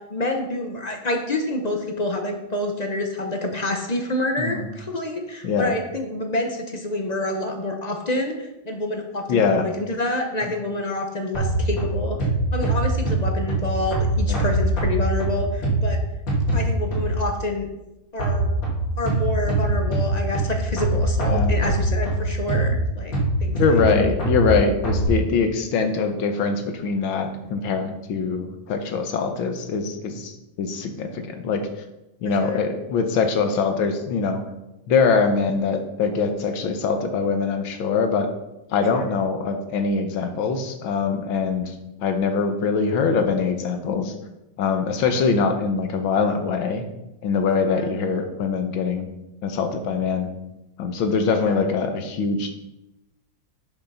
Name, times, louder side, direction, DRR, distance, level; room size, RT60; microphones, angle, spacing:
voice 1, 0.1-16.0 16.5-17.7 18.1-18.5 19.0-23.1 23.4-23.6 32.4-32.6 39.0-39.1 47.7-47.9 51.5-51.6, left 1 dB, 45° left, 3 dB, 0.5 m, -27 dB
voice 2, 9.3-9.7 10.4-10.5 14.3-14.6 21.2-21.5 23.6-31.9 32.2-34.4 34.9-38.3 38.7-44.1 44.6-46.8 47.2-49.1 49.4-50.3 50.8-52.5, left 5 dB, 85° left, 6 dB, 1.8 m, -23 dB
sound 1, 11.3-17.4 18.2-25.1, right 1 dB, 70° left, 2.8 m, -23 dB
7.3 x 6.0 x 5.5 m, 0.95 s
omnidirectional pair, 2.1 m